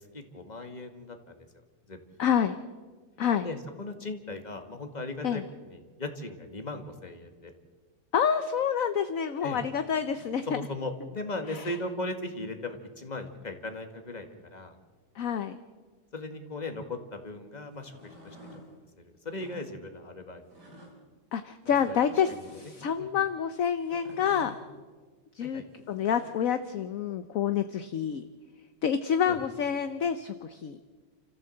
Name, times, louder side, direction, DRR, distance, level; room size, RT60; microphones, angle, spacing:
voice 1, 0.1-1.5 1.9-2.0 3.4-7.5 9.4-9.6 10.5-14.8 16.1-18.4 19.0-20.4 21.7-22.0 22.3-22.7 23.0-23.1 25.4-25.6 29.3-29.4, left 2 dB, 25° left, 6 dB, 2.0 m, -38 dB
voice 2, 2.2-2.6 3.2-3.5 5.2-5.4 8.1-10.6 11.5-11.7 15.2-15.6 21.3-24.6 25.4-28.2 28.8-30.8, left 8 dB, 60° left, 10 dB, 1.1 m, -28 dB
sound 1, 17.7-18.6 19.3-19.6 20.5-20.9 21.7-22.6 23.8-24.6 25.8-26.4, equal, 70° right, 5.4 m, -49 dB
29.0 x 14.5 x 7.8 m, 1.4 s
omnidirectional pair, 1.8 m